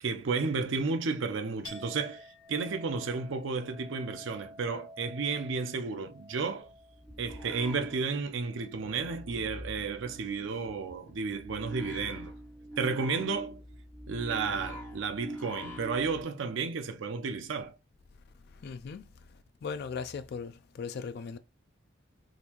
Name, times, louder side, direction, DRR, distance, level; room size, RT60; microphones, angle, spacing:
voice 1, 0.0-6.7 7.2-12.3 12.8-13.6 14.1-17.7, right 4 dB, 70° right, 0.5 m, -32 dB
Chink clink, 1.6-9.3 9.7-10.3, left 2 dB, 85° left, 1.2 m, -51 dB
sound 1, 6.6-8.5 8.8-16.2, equal, 10° left, 1.4 m, -43 dB
voice 2, 18.5-21.4, left 5 dB, 55° left, 0.3 m, -39 dB
3.9 x 2.6 x 2.8 m
head